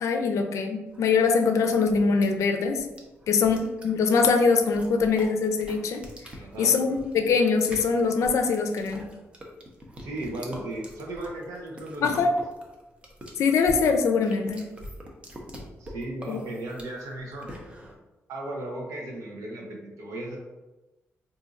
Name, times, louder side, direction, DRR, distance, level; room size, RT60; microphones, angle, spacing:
voice 1, 0.0-2.8 3.3-6.0 6.6-9.1 12.0-12.3 13.4-14.7 16.3-16.4, left 5 dB, 75° left, 5 dB, 0.4 m, -23 dB
sound 1, 0.9-18.0, equal, 20° right, 0.5 m, -44 dB
voice 2, 6.4-6.7 10.0-12.3 15.8-17.5 18.3-20.4, right 1 dB, 85° right, -1 dB, 0.8 m, -36 dB
4.0 x 2.6 x 2.5 m, 1.1 s
wide cardioid pair, 140°, 5 cm